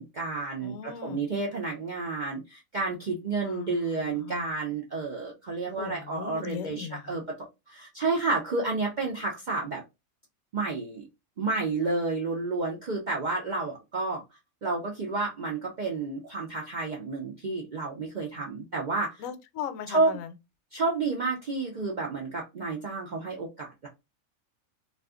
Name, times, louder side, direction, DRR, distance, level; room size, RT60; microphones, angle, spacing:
voice 1, 0.0-7.2 7.7-9.8 10.5-11.0 11.4-14.2 14.6-19.2 19.9-20.2 20.7-23.9, right 3 dB, 65° right, 0.4 m, -30 dB
voice 2, 0.6-1.2 3.4-4.5 5.8-7.2 19.2-20.3, left 8 dB, 75° left, 0.9 m, -39 dB
2.4 x 2.4 x 3.5 m
omnidirectional pair, 1.5 m